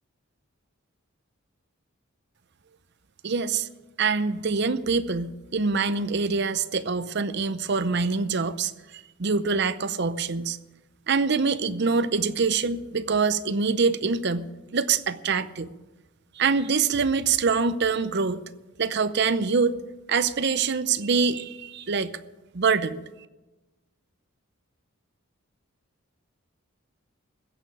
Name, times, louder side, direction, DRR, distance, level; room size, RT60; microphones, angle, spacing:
voice 1, 3.2-3.7 4.0-8.7 9.2-10.6 11.1-15.7 16.4-18.4 18.8-19.8 20.1-22.1 22.5-23.0, right 5 dB, 50° right, 13 dB, 0.6 m, -25 dB
15.5 x 6.8 x 9.8 m, 1.1 s
head